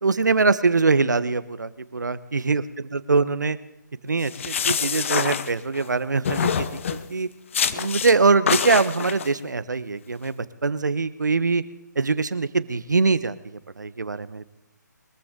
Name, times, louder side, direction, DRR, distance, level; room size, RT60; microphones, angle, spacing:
voice 1, 0.0-2.6 2.9-3.6 4.0-6.7 6.9-7.3 7.7-10.4 10.6-11.6 12.0-13.4 13.8-14.4, right 4 dB, 70° right, 15 dB, 1.1 m, -23 dB
sound 1, 4.2-5.9 6.3-7.1 7.5-8.1 8.5-9.3, left 7 dB, 40° left, 0.9 m, -26 dB
22.5 x 14.5 x 3.8 m, 0.93 s
figure-of-eight pair, 145°, 10 cm